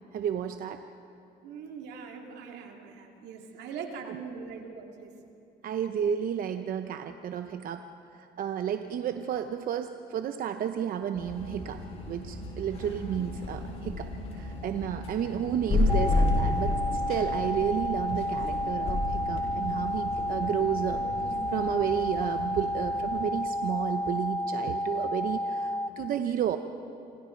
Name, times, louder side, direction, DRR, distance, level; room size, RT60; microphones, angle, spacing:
voice 1, 0.1-0.8 4.1-4.2 5.6-7.9 8.1-11.8 12.1-21.0 21.5-26.6, right 9 dB, 55° right, 7 dB, 0.9 m, -32 dB
voice 2, 1.4-5.1, right 6 dB, 85° right, 2 dB, 2.6 m, -41 dB
sound 1, 11.1-23.3, left 2 dB, 40° left, 6.7 m, -32 dB
sound 2, 15.9-25.9, left 1 dB, 15° left, 0.8 m, -31 dB
27.5 x 26.0 x 4.6 m, 2.8 s
cardioid pair, 110°, 17 cm